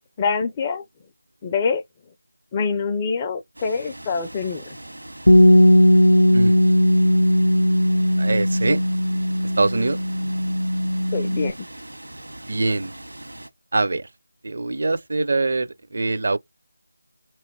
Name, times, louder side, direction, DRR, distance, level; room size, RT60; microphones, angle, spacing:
voice 1, 0.2-0.8 1.4-1.8 2.5-4.6 11.1-11.5, left 5 dB, 15° left, 0.4 m, -25 dB
sound 1, 3.5-13.5, right 1 dB, 85° right, 1.5 m, -40 dB
Bass guitar, 5.3-11.5, equal, 80° left, 0.5 m, -17 dB
voice 2, 8.2-8.8 9.6-10.0 12.5-12.9 13.7-14.1 14.4-16.4, right 3 dB, 50° right, 0.5 m, -23 dB
3.4 x 3.0 x 4.4 m
figure-of-eight pair, 170°, 0 cm